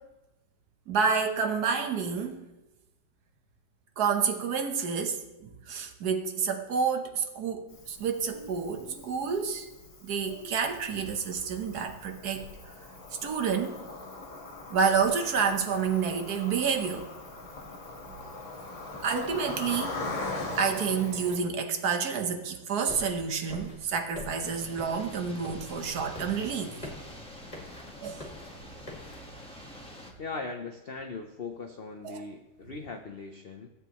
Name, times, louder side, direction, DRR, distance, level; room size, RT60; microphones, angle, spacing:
voice 1, 0.9-2.4 4.0-9.7 10.0-12.5 13.2-13.8 14.7-17.0 19.0-20.0 20.6-26.7 28.0-28.2 32.0-32.2, right 6 dB, 65° right, 6 dB, 1.4 m, -29 dB
Cricket, 7.7-21.4, left 2 dB, 45° left, 1.6 m, -41 dB
sound 1, 22.9-29.2, left 1 dB, 20° left, 1.7 m, -45 dB
sound 2, 24.4-30.1, left 1 dB, 5° left, 1.1 m, -47 dB
voice 2, 30.2-33.7, left 4 dB, 70° left, 4 dB, 0.5 m, -39 dB
16.0 x 8.3 x 3.0 m, 1.0 s
omnidirectional pair, 1.9 m